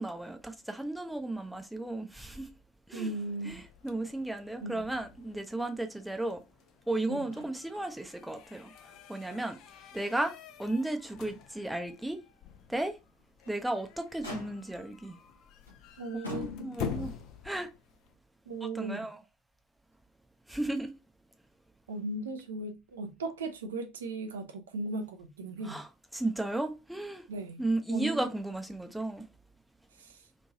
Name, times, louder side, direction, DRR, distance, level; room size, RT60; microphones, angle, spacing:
voice 1, 0.0-2.5 2.9-3.1 3.4-6.4 6.9-8.7 9.1-9.6 9.9-10.3 10.6-12.2 12.7-12.9 13.5-15.2 16.3-17.1 17.4-17.7 18.7-19.2 20.5-20.9 25.6-25.9 26.1-27.2 27.6-29.2, right 2 dB, 5° right, 0.5 m, -34 dB
voice 2, 2.9-3.6 4.6-4.9 7.1-7.3 16.0-17.1 18.5-19.1 21.9-25.8 27.3-27.6 27.9-28.3 29.9-30.2, right 2 dB, 75° right, 0.5 m, -37 dB
sound 1, 3.1-18.1, left 8 dB, 50° left, 0.4 m, -47 dB
Motor vehicle (road), 7.3-7.9 8.2-8.3 8.8-9.8 10.2-10.3 10.9-11.0 13.2-13.7 14.2-14.9 15.7-15.8 16.2-17.0 18.1-18.2, left 3 dB, 85° left, 0.8 m, -45 dB
3.0 x 2.6 x 2.6 m
figure-of-eight pair, 70°, 0 cm